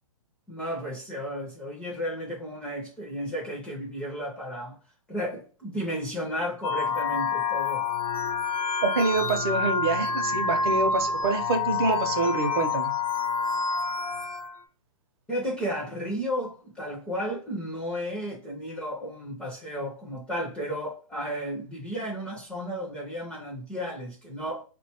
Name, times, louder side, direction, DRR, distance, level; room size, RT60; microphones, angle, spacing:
voice 1, 0.5-4.8 5.1-7.8 15.3-24.6, equal, 5° left, 0.4 m, -33 dB
sound 1, 6.6-14.6, left 4 dB, 85° left, 0.7 m, -28 dB
voice 2, 8.8-12.9, right 3 dB, 45° right, 0.5 m, -26 dB
3.8 x 2.2 x 2.7 m
hypercardioid pair, 155°, 18 cm